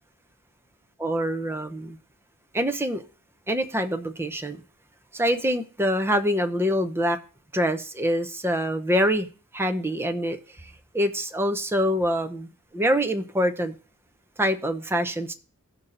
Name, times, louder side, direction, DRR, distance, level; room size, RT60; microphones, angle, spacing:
voice 1, 1.0-2.0 2.5-3.0 3.5-4.6 5.1-7.2 7.5-9.3 9.5-13.7 14.4-15.3, equal, 10° right, 0.8 m, -25 dB
16.5 x 5.8 x 4.0 m
head